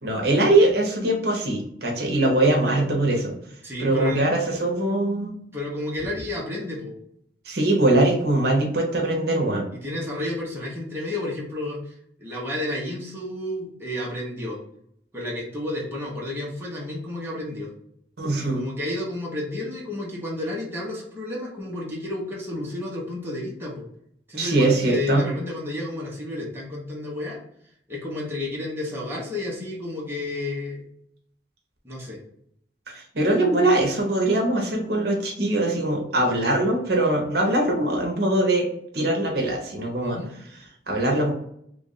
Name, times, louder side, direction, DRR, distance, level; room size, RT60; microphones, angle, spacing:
voice 1, 0.0-3.4 3.8-5.3 7.4-9.7 18.2-18.6 24.3-25.3 32.9-38.7 38.9-40.2 40.9-41.3, right 2 dB, 60° right, 0 dB, 0.8 m, -22 dB
voice 2, 3.6-4.3 5.5-6.9 9.8-14.6 15.1-17.7 18.4-23.8 24.3-27.4 27.9-30.9 31.8-32.2 40.0-40.3, left 1 dB, 15° right, -5 dB, 0.8 m, -31 dB
3.1 x 2.5 x 3.9 m, 0.71 s
head